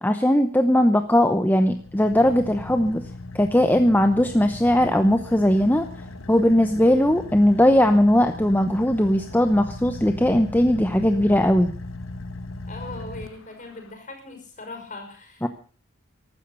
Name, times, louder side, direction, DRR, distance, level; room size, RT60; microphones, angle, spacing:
voice 1, 0.0-3.0 3.3-5.8 6.3-11.7 15.4-15.5, left 1 dB, 10° left, 7 dB, 0.8 m, -19 dB
Car / Idling, 1.1-13.9, left 2 dB, 70° left, 1.4 m, -38 dB
voice 2, 12.7-15.5, left 2 dB, 35° left, 4 dB, 5.6 m, -39 dB
15.0 x 12.5 x 6.6 m, 0.42 s
head